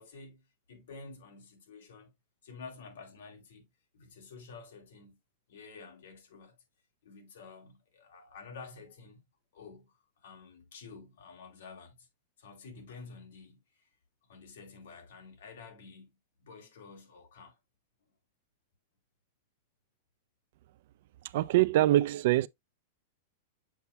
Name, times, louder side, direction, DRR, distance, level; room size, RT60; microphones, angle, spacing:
voice 1, 0.0-2.1 2.4-3.7 3.9-5.2 5.5-6.6 7.0-9.2 9.5-12.1 12.4-13.6 14.3-17.5, left 4 dB, 80° left, 3.0 m, -50 dB
voice 2, 21.3-22.5, right 15 dB, 55° right, 0.4 m, -24 dB
7.0 x 6.0 x 2.3 m
supercardioid pair, 160°, 0 cm